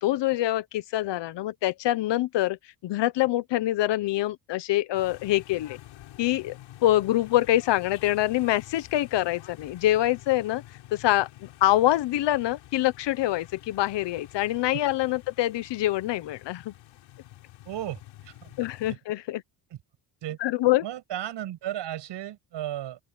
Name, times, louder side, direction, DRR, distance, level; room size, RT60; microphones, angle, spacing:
voice 1, 0.0-2.6 2.8-5.8 6.2-10.6 10.9-16.7 18.6-19.4 20.4-20.8, left 15 dB, 70° left, 1.1 m, -25 dB
sound 1, 4.9-19.0, left 14 dB, 85° left, 4.8 m, -48 dB
voice 2, 17.7-18.5 20.2-20.4 20.8-23.0, right 12 dB, 70° right, 7.8 m, -34 dB
open air
cardioid pair, 130°, 45 cm